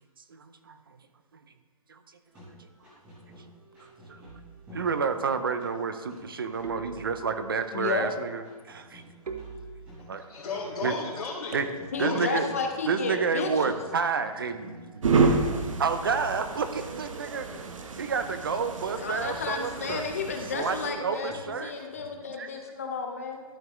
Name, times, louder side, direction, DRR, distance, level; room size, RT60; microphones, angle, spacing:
voice 1, 0.3-0.8 1.9-2.0 4.1-4.2 4.7-9.0 10.1-10.3 10.8-10.9 11.5-11.7 12.0-12.5 12.9-15.4 15.7-17.7 18.0-20.0 20.5-21.9 22.3-22.5, right 5 dB, 35° right, 10 dB, 0.5 m, -30 dB
sound 1, 2.2-22.1, equal, 5° right, 1.1 m, -52 dB
sound 2, 4.2-4.8 6.6-7.6 9.3-10.2 11.5-12.2, right 4 dB, 85° right, 1.0 m, -41 dB
voice 2, 7.7-8.1 11.9-13.7 19.0-23.4, left 5 dB, 25° left, 3 dB, 0.6 m, -32 dB
voice 3, 10.0-11.6 11.9-12.2 14.8-14.9, left 4 dB, 75° left, -6 dB, 1.9 m, -35 dB
sound 3, 15.0-20.9, right 4 dB, 60° right, 0.8 m, -29 dB
12.5 x 5.8 x 3.1 m, 1.4 s
hypercardioid pair, 175°, 19 cm